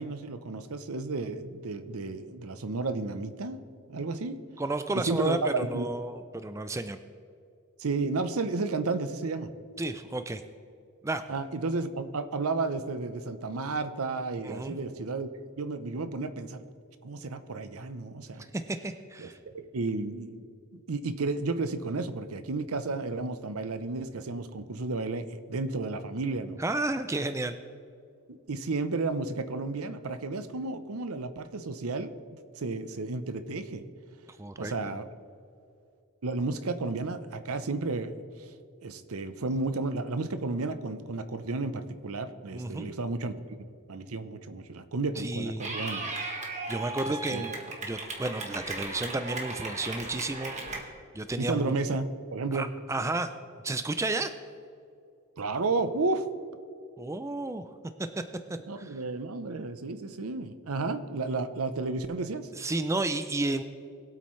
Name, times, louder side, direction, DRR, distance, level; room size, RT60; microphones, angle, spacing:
voice 1, 0.0-3.6 3.9-4.4 4.9-5.9 7.8-9.5 11.3-15.3 15.6-16.6 17.0-18.4 19.2-20.4 20.7-26.6 28.3-32.1 32.6-33.8 34.6-35.1 36.2-38.1 38.8-43.3 43.9-46.1 47.3-47.4 51.4-52.7 55.4-56.2 58.7-62.5, right 3 dB, 70° right, 11 dB, 0.7 m, -32 dB
voice 2, 4.6-7.0 9.8-10.4 11.0-11.2 14.4-14.7 18.5-19.4 26.6-27.5 34.4-34.7 42.5-42.9 45.2-45.7 46.7-47.5 47.8-51.7 52.5-53.3 53.6-54.3 57.0-57.7 58.2-58.3 58.5-58.9 62.5-63.6, right 2 dB, 15° right, 10 dB, 0.4 m, -32 dB
Clapping / Cheering, 45.6-50.8, right 2 dB, 30° right, 1.5 m, -36 dB
21.0 x 8.4 x 3.2 m, 2.4 s
head